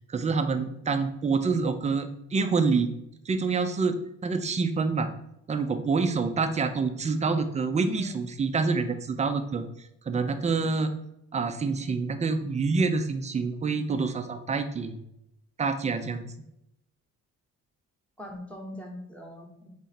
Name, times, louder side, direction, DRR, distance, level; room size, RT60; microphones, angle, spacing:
voice 1, 0.1-2.9 3.3-5.1 5.5-9.7 10.1-10.9 11.3-15.0 15.6-16.3, right 4 dB, 25° right, 8 dB, 0.5 m, -27 dB
voice 2, 7.8-8.2 18.2-19.7, left 1 dB, 5° left, 1 dB, 1.0 m, -40 dB
3.7 x 3.1 x 4.2 m, 0.80 s
cardioid pair, 90°, 30 cm